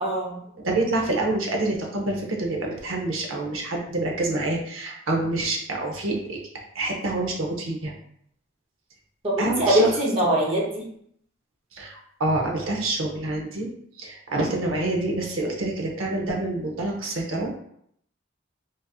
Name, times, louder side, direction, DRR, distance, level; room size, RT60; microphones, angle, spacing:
voice 1, 0.0-0.4 9.2-10.8, right 1 dB, 30° right, -4 dB, 0.8 m, -22 dB
voice 2, 0.6-6.4 6.7-7.9 9.4-9.9 11.7-13.7 14.0-17.6, right 2 dB, 90° right, 0 dB, 0.7 m, -27 dB
4.0 x 2.6 x 2.3 m, 0.69 s
head